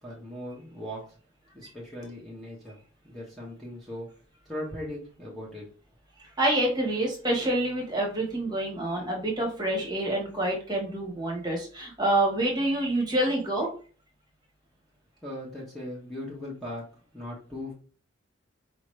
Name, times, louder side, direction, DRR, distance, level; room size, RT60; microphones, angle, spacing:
voice 1, 0.0-1.2 1.5-2.8 3.0-4.1 4.4-5.7 15.2-16.9 17.1-17.7, left 1 dB, ahead, -5 dB, 1.1 m, -39 dB
voice 2, 6.4-13.7, right 1 dB, 20° right, 0 dB, 1.3 m, -27 dB
4.9 x 3.0 x 3.2 m, 0.38 s
head